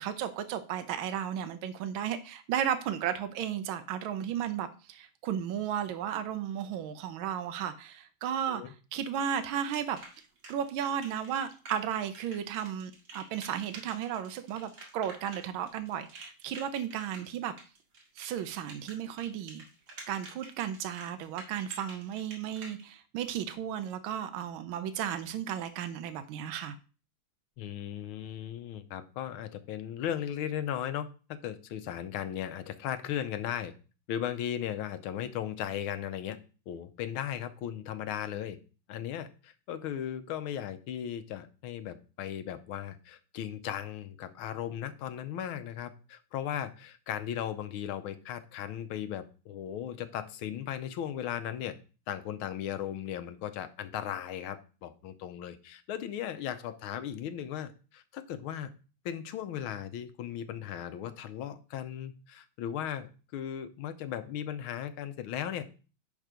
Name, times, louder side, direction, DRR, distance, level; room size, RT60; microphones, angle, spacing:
voice 1, 0.0-10.0 10.5-17.5 18.2-19.6 20.1-26.7, right 9 dB, 80° right, 9 dB, 1.5 m, -34 dB
sound 1, 9.7-22.8, right 2 dB, 65° right, 2.7 m, -49 dB
voice 2, 27.6-33.7 34.1-36.4 36.7-38.6 38.9-51.7 52.1-58.7 59.0-65.6, left 10 dB, 85° left, 11 dB, 1.6 m, -37 dB
10.0 x 3.7 x 5.0 m, 0.35 s
omnidirectional pair, 2.2 m